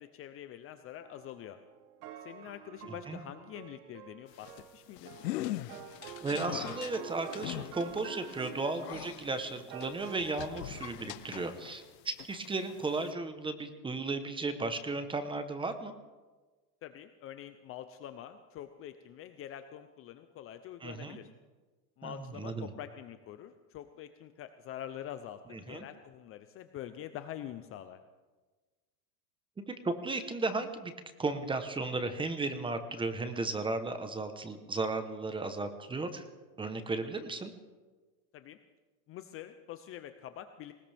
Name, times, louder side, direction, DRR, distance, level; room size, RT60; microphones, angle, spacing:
voice 1, 0.0-1.6 2.2-5.1 16.8-21.3 22.0-28.0 38.3-38.6 39.1-40.7, left 11 dB, 30° left, 9 dB, 0.6 m, -45 dB
sound 1, 1.0-11.1, right 9 dB, 70° right, 1.3 m, -48 dB
sound 2, 4.3-11.9 12.2-13.1, left 15 dB, 85° left, 0.8 m, -42 dB
voice 2, 6.2-15.9 20.8-21.2 22.0-22.7 25.5-25.8 29.7-30.9 31.2-36.2 36.6-37.5, right 3 dB, 10° right, 9 dB, 0.9 m, -35 dB
19.5 x 19.5 x 3.5 m, 1.3 s
supercardioid pair, 140°, 48 cm